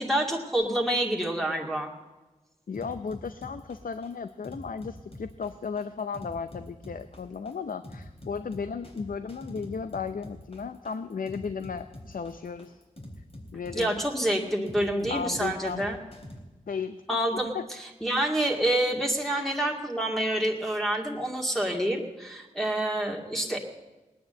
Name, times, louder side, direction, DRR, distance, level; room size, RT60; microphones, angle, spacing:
voice 1, 0.0-1.9 13.7-16.0 17.1-17.5 18.0-23.6, right 1 dB, ahead, -1 dB, 2.2 m, -27 dB
voice 2, 2.7-12.8 13.5-14.0 15.1-15.8 16.7-17.0 17.5-17.6 19.3-19.5, left 5 dB, 75° left, 11 dB, 0.6 m, -35 dB
sound 1, 2.7-16.4, left 1 dB, 45° left, 3.8 m, -45 dB
18.5 x 9.5 x 7.7 m, 1.1 s
wide cardioid pair, 50°, 14 cm